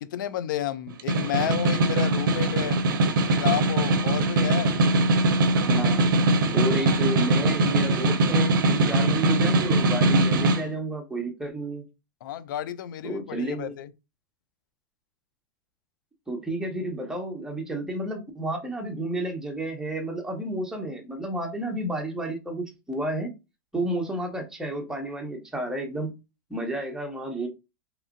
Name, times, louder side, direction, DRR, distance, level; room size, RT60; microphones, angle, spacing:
voice 1, 0.0-2.8 3.3-4.7 12.2-13.9, left 12 dB, 70° left, 0.4 m, -31 dB
Snare drum, 0.9-10.6, right 2 dB, 75° right, 0.5 m, -22 dB
voice 2, 5.5-6.0 6.5-11.8 13.0-13.7 16.3-23.3 23.7-26.1 26.5-27.5, right 1 dB, 5° right, 0.9 m, -31 dB
2.9 x 2.4 x 2.5 m
hypercardioid pair, 115°, 11 cm